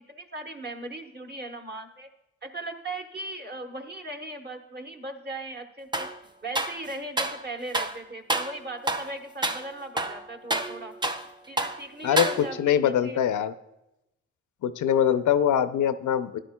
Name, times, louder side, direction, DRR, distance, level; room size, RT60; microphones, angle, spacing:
voice 1, 0.1-2.1 2.4-6.1 6.4-10.9 11.5-13.2, right 2 dB, 35° right, 4 dB, 1.1 m, -38 dB
sound 1, 5.9-6.2 6.5-7.4 7.7-8.0 8.3-8.6 8.9-9.1 9.4-9.6 10.0-11.3 11.6-11.8 12.2-12.7, right 2 dB, 15° right, 0.5 m, -28 dB
voice 2, 12.6-13.5 14.6-16.4, left 9 dB, 85° left, 12 dB, 0.5 m, -23 dB
13.0 x 10.0 x 2.2 m, 0.89 s
cardioid pair, 65°, 30 cm